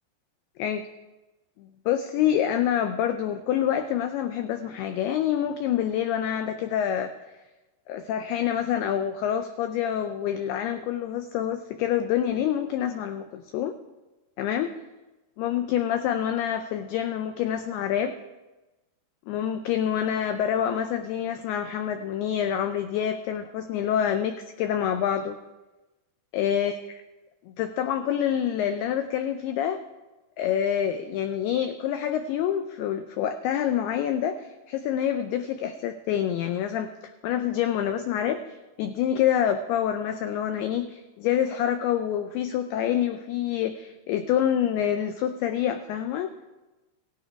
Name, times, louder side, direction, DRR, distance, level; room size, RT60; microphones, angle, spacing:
voice 1, 1.6-7.1 7.9-13.7 14.4-14.8 15.4-18.2 19.3-25.4 26.3-26.7 27.5-29.8 30.4-46.3, left 10 dB, 85° left, 8 dB, 2.3 m, -27 dB
18.0 x 9.5 x 4.7 m, 1.1 s
omnidirectional pair, 5.2 m